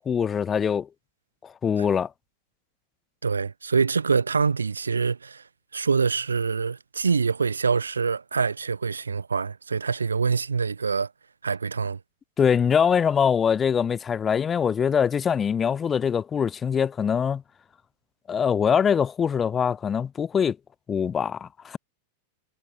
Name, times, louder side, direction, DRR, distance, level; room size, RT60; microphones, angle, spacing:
voice 1, 0.1-0.9 1.4-2.1 12.4-17.4 18.3-20.6 20.9-21.8, left 7 dB, 20° left, 0.5 m, -23 dB
voice 2, 3.2-5.4 5.7-11.1 11.4-12.0, right 5 dB, 75° right, 0.9 m, -25 dB
figure-of-eight pair, 90°, 0 cm